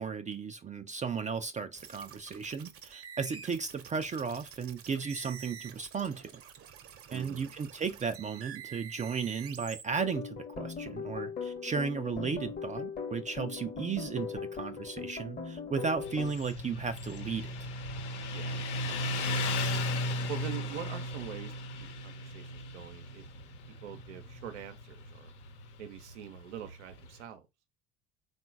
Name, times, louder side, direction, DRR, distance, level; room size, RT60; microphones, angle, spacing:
voice 1, 0.0-6.4 7.1-17.7, right 5 dB, 20° right, 0.4 m, -35 dB
sound 1, 1.7-9.8, right 8 dB, 45° right, 0.8 m, -48 dB
voice 2, 7.1-7.5 18.3-19.6 20.3-21.5 21.8-23.3 23.8-25.3 25.8-27.5, right 9 dB, 85° right, 0.7 m, -44 dB
sound 2, 10.0-16.3, left 6 dB, 30° left, 0.9 m, -39 dB
Motorcycle, 16.0-27.1, left 1 dB, 80° left, 1.0 m, -36 dB
3.7 x 2.4 x 4.5 m
hypercardioid pair, 65°, 34 cm